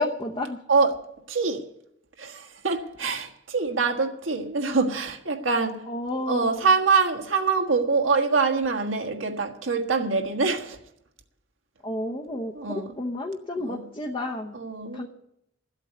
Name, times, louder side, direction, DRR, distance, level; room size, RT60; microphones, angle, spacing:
voice 1, 0.0-0.6 5.9-6.5 11.8-14.6 14.9-15.1, left 2 dB, 25° left, 0.9 m, -31 dB
voice 2, 0.7-1.7 2.2-5.9 6.3-10.8 12.5-12.9 13.6-13.8 14.5-15.0, right 4 dB, 80° right, 1.6 m, -25 dB
14.0 x 8.2 x 9.6 m
head